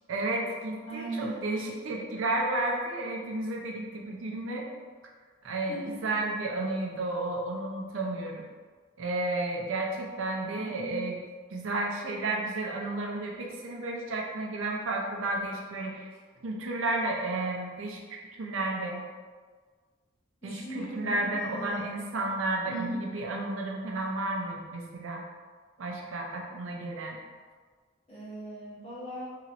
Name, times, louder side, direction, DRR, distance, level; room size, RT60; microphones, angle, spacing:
voice 1, 0.1-4.7 5.4-8.4 9.0-11.2 11.5-16.1 16.4-19.0 20.4-25.2 25.8-27.2, right 2 dB, 80° right, 0 dB, 0.5 m, -32 dB
voice 2, 0.9-1.4 5.4-6.1 10.5-11.1 16.3-16.4 20.4-21.9 22.7-23.0 28.1-29.3, right 1 dB, 30° left, -9 dB, 1.1 m, -39 dB
2.9 x 2.9 x 2.5 m, 1.5 s
head